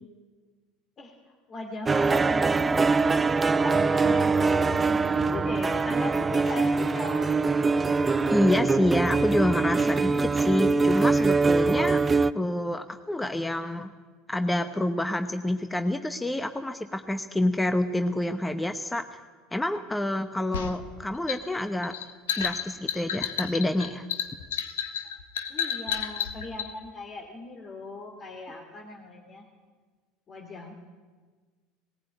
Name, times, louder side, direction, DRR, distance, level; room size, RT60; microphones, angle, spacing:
voice 1, 1.0-7.4 25.5-29.4 30.3-30.7, left 2 dB, 35° left, 1 dB, 2.6 m, -39 dB
sound 1, 1.9-12.3, right 4 dB, 20° right, 0.5 m, -23 dB
voice 2, 8.3-12.0 12.3-13.9 14.3-19.2 19.5-21.9 22.4-24.1, left 1 dB, 10° left, 8 dB, 1.0 m, -27 dB
sound 2, 20.5-26.7, left 8 dB, 90° left, 1.4 m, -31 dB
19.0 x 15.5 x 9.0 m, 1.5 s
hypercardioid pair, 90°, 0 cm